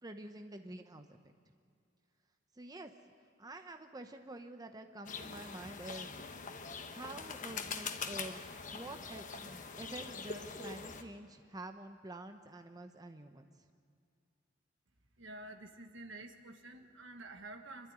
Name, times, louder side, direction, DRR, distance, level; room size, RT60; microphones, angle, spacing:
voice 1, 0.0-1.1 2.6-2.9 3.4-6.1 6.9-8.4 8.7-13.4, right 1 dB, 20° right, 6 dB, 0.8 m, -48 dB
sound 1, 5.0-11.0, left 5 dB, 40° left, 1.2 m, -43 dB
voice 2, 15.2-17.9, right 2 dB, 70° right, 6 dB, 1.6 m, -49 dB
27.0 x 12.5 x 9.7 m, 2.3 s
head